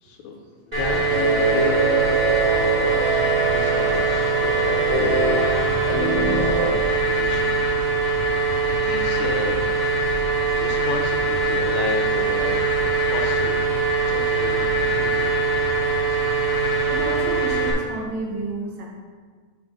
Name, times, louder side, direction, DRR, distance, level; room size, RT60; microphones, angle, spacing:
voice 1, 0.0-0.4 0.7-2.2 3.1-7.5 8.8-9.6 10.6-13.7 14.0-15.4, left 5 dB, 80° left, 2 dB, 1.9 m, -33 dB
sound 1, 0.7-17.7, right 3 dB, 20° right, 1.4 m, -22 dB
sound 2, 1.1-6.7, right 3 dB, 40° right, 1.8 m, -24 dB
voice 2, 16.9-18.9, right 2 dB, 70° right, -2 dB, 2.2 m, -31 dB
5.6 x 5.1 x 5.1 m, 1.5 s
omnidirectional pair, 3.6 m